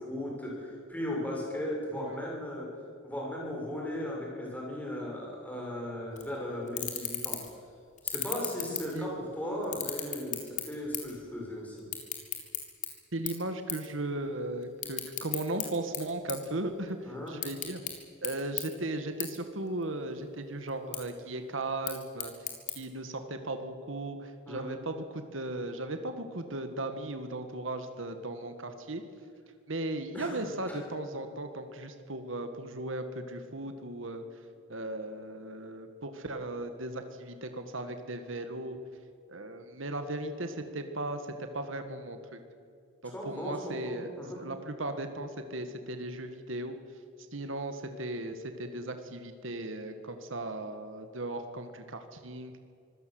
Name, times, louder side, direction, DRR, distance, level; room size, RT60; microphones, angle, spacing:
voice 1, 0.0-2.7 3.0-7.4 8.0-11.9 17.0-17.4 24.5-24.8 30.1-30.8 43.0-44.4, left 1 dB, 10° left, -2 dB, 6.7 m, -37 dB
sound 1, 6.2-6.3 6.7-7.6 8.0-9.3 9.6-11.2 11.5-12.9 13.3-13.4 13.7-13.9 14.2-15.7 15.9-16.9 17.3-17.9 18.2-18.3 18.6-18.7 19.2-19.3 19.7-20.2 20.7-21.0 21.7-22.7, left 10 dB, 40° left, 3.8 m, -35 dB
voice 2, 13.1-17.8 18.2-22.3 22.8-29.0 29.7-34.2 34.7-38.8 39.3-42.4 43.0-46.8 47.3-52.5, right 2 dB, 75° right, 7 dB, 1.8 m, -37 dB
25.5 x 17.0 x 7.9 m, 2.4 s
head